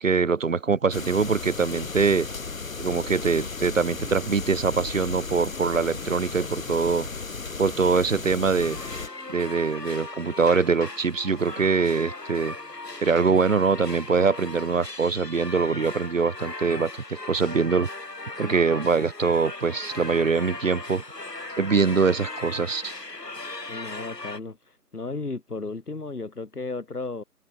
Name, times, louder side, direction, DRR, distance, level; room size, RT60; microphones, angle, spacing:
voice 1, 0.0-2.3 2.8-7.1 7.6-8.8 9.3-12.5 13.0-16.9 17.2-17.9 18.4-21.0 21.6-22.9, right 5 dB, 50° right, 1.6 m, -23 dB
sound 1, 0.9-9.1, left 4 dB, 55° left, 4.1 m, -35 dB
sound 2, 8.6-24.4, left 2 dB, 90° left, 2.8 m, -38 dB
voice 2, 23.7-27.2, left 3 dB, 70° left, 4.3 m, -34 dB
figure-of-eight pair, 155°, 48 cm